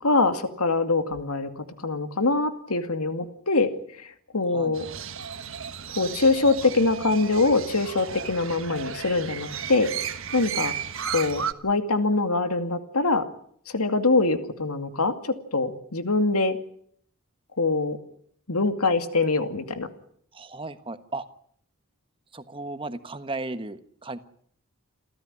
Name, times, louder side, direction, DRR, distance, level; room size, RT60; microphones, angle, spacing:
voice 1, 0.0-3.7 4.0-4.1 4.3-4.9 6.0-10.7 11.1-13.2 13.7-15.1 15.5-16.6 17.6-18.0 18.5-19.9, left 3 dB, 85° left, 9 dB, 2.4 m, -24 dB
Crow, 4.7-11.5, right 8 dB, 60° right, 1.4 m, -34 dB
voice 2, 20.3-21.2 22.3-24.2, right 2 dB, 25° right, 11 dB, 1.3 m, -35 dB
29.0 x 14.0 x 9.9 m, 0.64 s
head